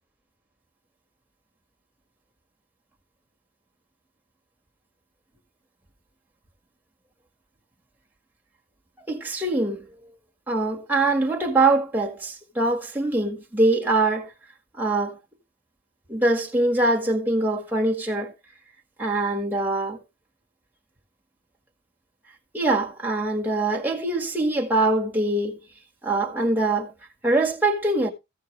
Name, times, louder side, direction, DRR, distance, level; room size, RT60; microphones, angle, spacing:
voice 1, 9.1-9.9 10.5-14.3 14.8-15.2 16.1-18.3 19.0-20.0 22.5-25.6 26.0-26.9 27.2-28.1, right 2 dB, 10° right, 1.7 m, -23 dB
15.0 x 6.6 x 3.3 m
head